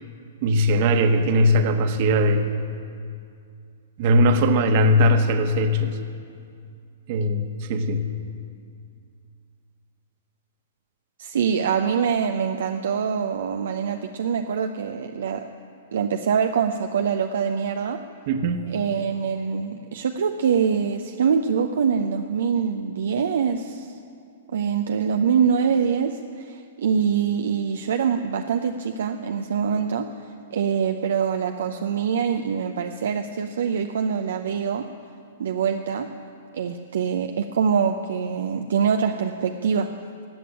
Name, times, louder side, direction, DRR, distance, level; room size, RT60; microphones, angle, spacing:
voice 1, 0.4-2.5 4.0-6.0 7.1-8.0 18.3-18.6, equal, 45° right, 7 dB, 1.4 m, -19 dB
voice 2, 11.2-15.5 15.9-18.0 18.7-23.9 24.5-30.1 30.5-34.9 35.4-36.1 36.5-39.9, right 7 dB, 65° right, 5 dB, 0.7 m, -24 dB
15.0 x 8.5 x 9.9 m, 2.4 s
figure-of-eight pair, 110°, 0 cm